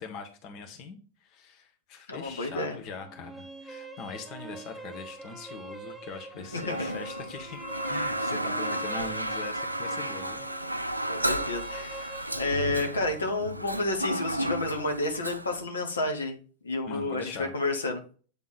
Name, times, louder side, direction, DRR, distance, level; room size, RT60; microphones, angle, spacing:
voice 1, 0.0-7.6 7.9-10.5 16.9-17.5, left 5 dB, 40° left, 6 dB, 1.2 m, -41 dB
voice 2, 2.1-2.8 6.5-6.9 11.1-16.4 16.6-18.0, left 2 dB, 70° left, 3 dB, 1.3 m, -31 dB
sound 1, 3.0-13.0, right 2 dB, ahead, 1.0 m, -44 dB
Toilet flush, 6.5-15.6, right 1 dB, 85° right, 0.4 m, -33 dB
8.3 x 3.6 x 4.3 m, 0.38 s
figure-of-eight pair, 90°, 0 cm